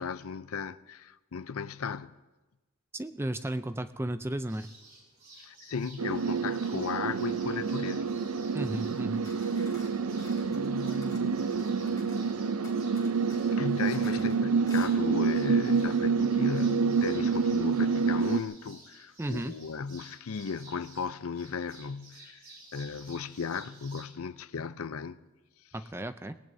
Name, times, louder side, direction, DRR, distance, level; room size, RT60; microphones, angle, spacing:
voice 1, 0.0-2.1 5.4-8.1 10.5-11.4 13.5-22.4 22.7-25.2, left 5 dB, 80° left, 0.5 m, -36 dB
voice 2, 2.9-4.7 8.5-9.2 14.2-14.3 19.2-19.5 25.7-26.4, right 1 dB, 10° right, 0.4 m, -34 dB
sound 1, 4.5-24.1, right 2 dB, 40° right, 4.2 m, -54 dB
sound 2, 6.0-18.4, right 5 dB, 85° right, 0.6 m, -28 dB
sound 3, 9.0-12.3 12.6-14.4 14.7-14.9, left 3 dB, 15° left, 3.0 m, -52 dB
25.5 x 18.5 x 2.7 m
head